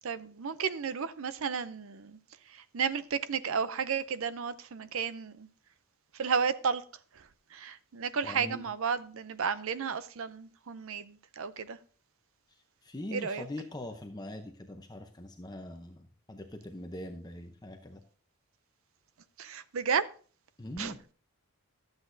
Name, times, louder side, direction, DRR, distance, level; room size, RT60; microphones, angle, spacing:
voice 1, 0.0-2.2 2.5-5.5 6.1-6.8 7.2-7.3 7.5-11.8 13.1-13.5 19.4-20.0 20.8-20.9, right 6 dB, 65° right, 0.5 m, -33 dB
voice 2, 8.2-8.7 12.8-18.0 20.6-21.0, left 1 dB, 20° left, 0.7 m, -42 dB
12.0 x 8.0 x 2.6 m
head